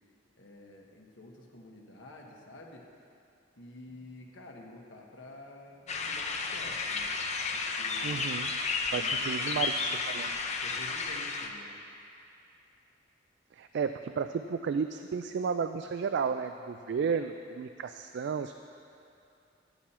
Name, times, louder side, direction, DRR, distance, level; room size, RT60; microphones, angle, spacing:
voice 1, 0.4-2.8 3.6-7.2 7.5-8.2 8.9-11.8, left 1 dB, 80° left, -1 dB, 1.3 m, -50 dB
sound 1, 5.9-11.5, left 4 dB, 40° left, 0.6 m, -32 dB
voice 2, 8.0-8.5 8.9-10.3 13.5-18.5, right 6 dB, 65° right, 8 dB, 0.3 m, -33 dB
11.5 x 9.4 x 4.3 m, 2.6 s
head